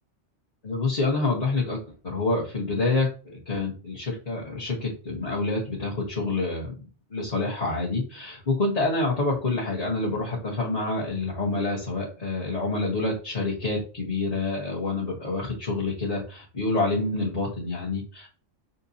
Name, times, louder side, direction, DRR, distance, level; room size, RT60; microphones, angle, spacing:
voice 1, 0.6-1.8 2.0-3.1 3.5-6.7 7.1-18.3, left 3 dB, 35° left, -5 dB, 1.2 m, -27 dB
6.0 x 2.7 x 2.7 m, 0.36 s
omnidirectional pair, 1.2 m